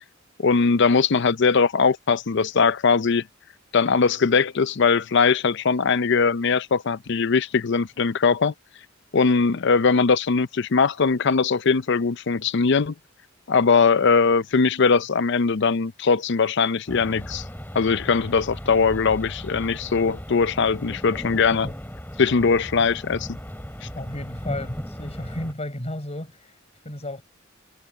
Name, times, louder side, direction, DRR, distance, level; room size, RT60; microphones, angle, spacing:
voice 1, 0.4-3.2 3.7-8.5 9.1-12.9 13.5-17.4 17.7-21.7 22.2-23.3 23.8-23.9, left 5 dB, 60° left, 0.6 m, -20 dB
sound 1, 16.9-25.5, equal, 10° left, 6.1 m, -36 dB
voice 2, 24.0-27.2, left 1 dB, 35° left, 4.4 m, -34 dB
head